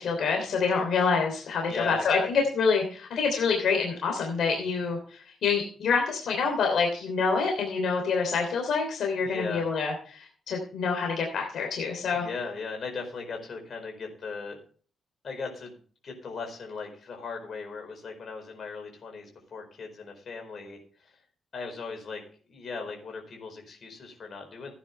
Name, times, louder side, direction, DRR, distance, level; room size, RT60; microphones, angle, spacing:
voice 1, 0.0-12.3, left 5 dB, 65° left, 1 dB, 3.2 m, -27 dB
voice 2, 1.7-2.3 9.2-9.7 12.1-14.6 15.2-15.8 16.0-20.8 21.5-22.2 22.5-24.7, left 4 dB, 45° left, 2 dB, 4.7 m, -38 dB
16.5 x 9.7 x 3.4 m, 0.43 s
wide cardioid pair, 160°, 0 cm